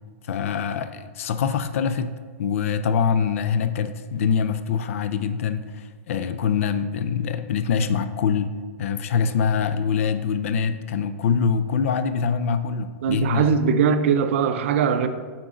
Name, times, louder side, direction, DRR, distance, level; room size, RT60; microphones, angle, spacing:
voice 1, 0.2-2.1 2.4-8.5 8.8-13.5, left 6 dB, 65° left, 11 dB, 0.4 m, -24 dB
voice 2, 13.0-15.1, right 6 dB, 60° right, 10 dB, 0.5 m, -20 dB
8.9 x 3.9 x 3.8 m, 1.5 s
supercardioid pair, 165°, 8 cm